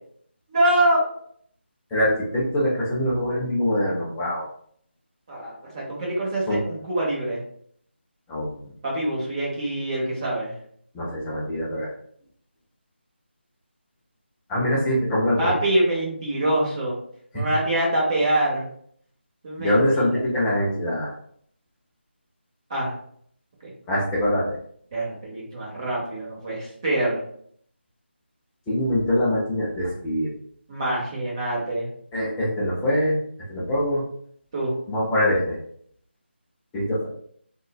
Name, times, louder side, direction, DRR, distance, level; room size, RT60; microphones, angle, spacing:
voice 1, 0.5-1.1 5.3-7.4 8.8-10.5 15.4-17.0 17.3-18.7 19.4-20.2 22.7-22.9 23.6-23.7 24.9-27.2 30.7-31.9 34.5-34.7, right 1 dB, 30° right, -4 dB, 1.0 m, -25 dB
voice 2, 1.9-4.4 6.5-6.6 8.3-8.6 10.9-11.9 14.5-15.4 17.3-17.4 19.6-21.1 23.9-24.6 28.7-30.3 32.1-33.2 33.5-34.0 34.9-35.6 36.7-37.1, left 1 dB, 5° left, -6 dB, 0.4 m, -23 dB
3.6 x 2.2 x 2.3 m, 0.63 s
figure-of-eight pair, 165°, 6 cm